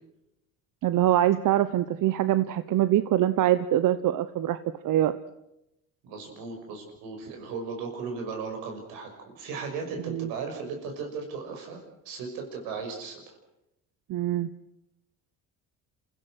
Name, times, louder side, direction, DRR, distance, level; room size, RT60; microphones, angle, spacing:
voice 1, 0.8-4.6 4.8-5.1 10.1-10.3 14.1-14.5, right 13 dB, 65° right, 13 dB, 1.0 m, -24 dB
voice 2, 6.0-11.8 12.0-13.2, right 5 dB, 90° right, 3 dB, 6.2 m, -36 dB
28.0 x 16.0 x 7.9 m, 0.85 s
supercardioid pair, 85°, 34 cm